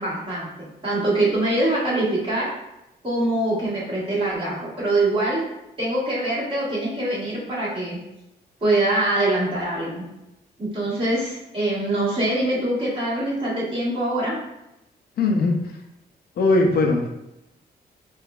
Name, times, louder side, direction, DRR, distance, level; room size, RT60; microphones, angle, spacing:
voice 1, 0.0-2.5 3.0-5.4 5.8-8.0 8.6-10.0 10.6-14.4, right 1 dB, 30° right, -7 dB, 1.5 m, -24 dB
voice 2, 15.2-15.6 16.4-17.1, left 2 dB, 65° left, 2 dB, 0.5 m, -19 dB
3.6 x 3.2 x 2.3 m, 0.89 s
wide cardioid pair, 135°, 17 cm